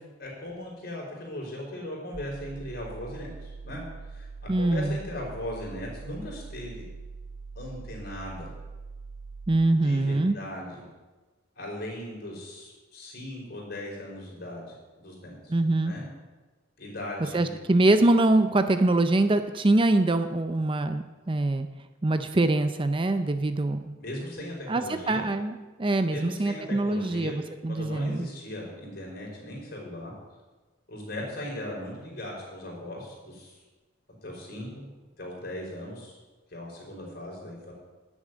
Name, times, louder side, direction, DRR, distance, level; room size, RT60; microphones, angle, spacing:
voice 1, 0.2-3.8 4.1-6.8 7.5-8.5 9.8-10.8 11.6-15.5 15.8-16.0 16.8-17.5 24.0-25.2 26.1-27.4 27.7-30.1 30.9-33.6 34.2-34.8 35.2-36.2 36.5-37.7, left 1 dB, 50° left, -2 dB, 5.0 m, -38 dB
sound 1, 2.1-9.5, right 4 dB, 60° right, 0.9 m, -43 dB
voice 2, 4.5-5.0 9.5-10.4 15.5-15.9 17.3-21.7 22.0-23.9 24.7-28.3, right 2 dB, 25° right, 9 dB, 0.5 m, -24 dB
11.5 x 7.2 x 9.4 m, 1.2 s
head